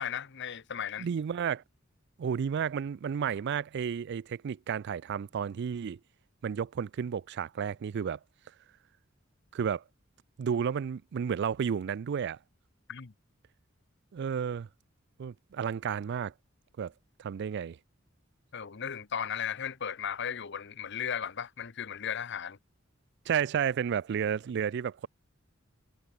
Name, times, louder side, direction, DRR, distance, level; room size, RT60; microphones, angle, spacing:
voice 1, 0.0-1.1 12.9-13.1 18.5-22.6, left 8 dB, 60° left, 0.9 m, -36 dB
voice 2, 1.0-1.6 2.2-6.0 6.4-8.2 9.5-9.8 10.4-12.4 14.1-14.7 15.2-16.3 16.8-16.9 17.2-17.8 23.3-25.1, right 7 dB, 60° right, 0.3 m, -32 dB
head